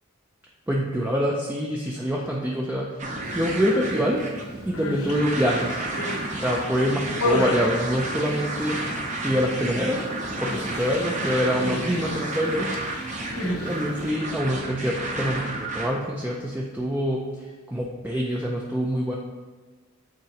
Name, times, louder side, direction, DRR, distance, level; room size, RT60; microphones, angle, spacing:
voice 1, 0.7-3.0 3.3-4.3 4.7-5.8 6.1-8.8 9.2-10.0 10.4-12.7 13.4-17.2 17.7-19.2, equal, 10° right, -3 dB, 0.4 m, -25 dB
sound 1, 3.0-15.9, right 2 dB, 35° right, 0.8 m, -31 dB
Human voice, 3.3-4.0 4.5-6.3 6.8-8.8 9.0-9.5 9.7-10.0 10.4-14.1, left 3 dB, 85° left, 0.7 m, -33 dB
8.9 x 3.7 x 2.9 m, 1.3 s
head